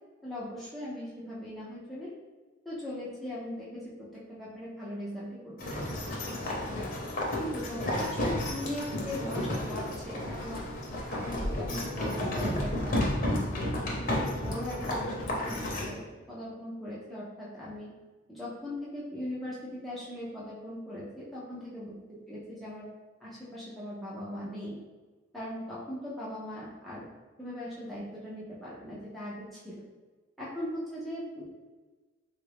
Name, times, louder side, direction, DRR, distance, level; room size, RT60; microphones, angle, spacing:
voice 1, 0.2-2.1 2.6-6.7 7.4-10.6 11.1-13.1 13.5-17.9 18.3-21.9 22.3-22.9 23.2-24.8 25.3-27.1 27.4-29.8 30.4-31.4, left 1 dB, ahead, -9 dB, 0.5 m, -39 dB
sound 1, 5.6-15.9, left 1 dB, 50° left, 0.8 m, -32 dB
3.4 x 2.4 x 3.3 m, 1.3 s
head